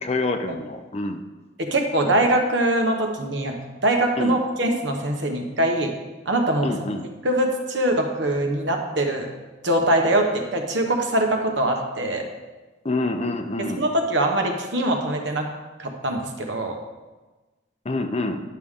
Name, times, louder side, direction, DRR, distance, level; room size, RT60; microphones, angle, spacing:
voice 1, 0.0-1.2 4.2-4.4 6.6-7.1 12.8-13.8 17.8-18.4, left 2 dB, 30° left, 6 dB, 0.5 m, -26 dB
voice 2, 1.6-5.9 6.2-6.7 7.2-9.3 9.6-12.2 13.6-15.5 15.8-16.8, right 1 dB, 60° right, 3 dB, 1.1 m, -23 dB
10.5 x 6.5 x 3.7 m, 1.2 s
head